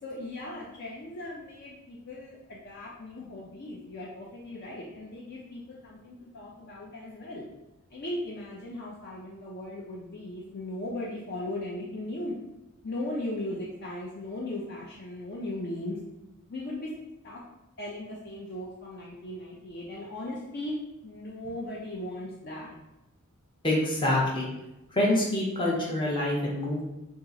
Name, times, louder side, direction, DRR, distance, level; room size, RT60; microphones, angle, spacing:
voice 1, 0.0-7.5 7.9-12.3 12.8-16.0 16.5-16.9 17.2-17.4 17.8-20.8 21.0-22.7, left 1 dB, 50° left, -3 dB, 0.5 m, -37 dB
voice 2, 23.6-24.5 24.9-26.8, left 1 dB, 25° left, -4 dB, 0.8 m, -26 dB
2.8 x 2.4 x 3.8 m, 0.95 s
head